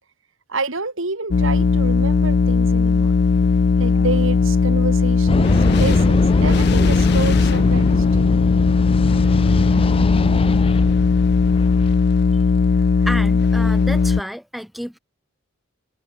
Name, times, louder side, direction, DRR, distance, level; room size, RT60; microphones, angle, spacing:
voice 1, 0.5-3.1 3.8-8.4, right 3 dB, 75° right, 2.6 m, -28 dB
sound 1, 1.3-14.2, left 4 dB, 50° left, 0.4 m, -17 dB
sound 2, 3.8-8.5, left 3 dB, 80° left, 4.4 m, -50 dB
sound 3, 5.3-12.0, left 1 dB, 25° left, 0.9 m, -23 dB
voice 2, 13.1-15.0, equal, ahead, 0.8 m, -30 dB
head